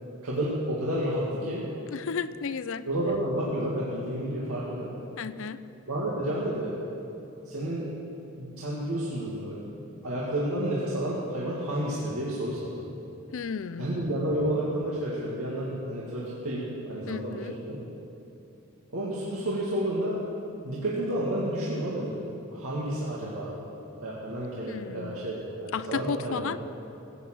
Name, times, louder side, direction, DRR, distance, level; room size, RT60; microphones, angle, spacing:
voice 1, 0.2-1.7 2.9-4.9 5.9-6.8 7.5-7.9 8.4-9.6 10.0-12.9 13.8-17.8 18.9-20.2 20.6-22.2 22.5-23.5 24.0-26.5, right 1 dB, 75° right, -7 dB, 2.3 m, -30 dB
voice 2, 1.9-2.8 5.2-5.6 13.3-13.9 17.1-17.6 24.7-25.3 25.7-26.6, left 5 dB, 60° left, 15 dB, 0.5 m, -33 dB
16.0 x 8.9 x 7.7 m, 2.8 s
head